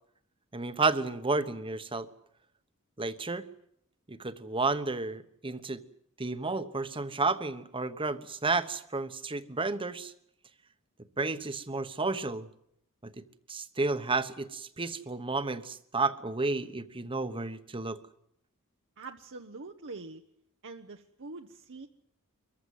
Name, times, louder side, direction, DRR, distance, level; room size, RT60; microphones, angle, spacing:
voice 1, 0.5-2.1 3.0-3.4 4.1-5.8 6.2-10.1 11.2-12.5 13.0-13.1 13.5-18.0, right 3 dB, 25° right, 11 dB, 1.1 m, -31 dB
voice 2, 19.0-20.2 20.6-21.9, right 3 dB, 60° right, 4 dB, 1.0 m, -44 dB
23.5 x 15.0 x 9.4 m, 0.73 s
head